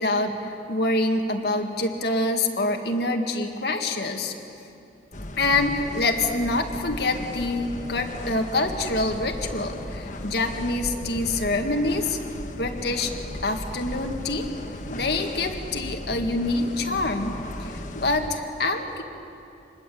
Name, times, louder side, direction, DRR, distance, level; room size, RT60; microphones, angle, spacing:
voice 1, 0.0-4.3 5.4-12.2 12.6-13.1 13.4-14.5 14.9-17.4 17.7-19.0, left 2 dB, 60° left, 3 dB, 2.0 m, -26 dB
sound 1, 5.1-18.3, left 1 dB, 45° left, 1.3 m, -36 dB
27.0 x 21.0 x 8.6 m, 2.8 s
head